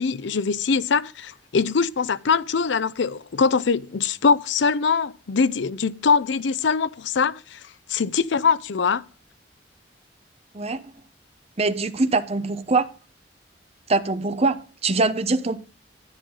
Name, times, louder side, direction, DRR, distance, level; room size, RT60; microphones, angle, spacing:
voice 1, 0.0-7.6 7.9-9.0, left 5 dB, 75° left, 0.5 m, -22 dB
voice 2, 10.5-10.9 11.6-12.9 13.9-15.6, right 3 dB, 35° right, 0.8 m, -23 dB
10.5 x 9.9 x 3.8 m
head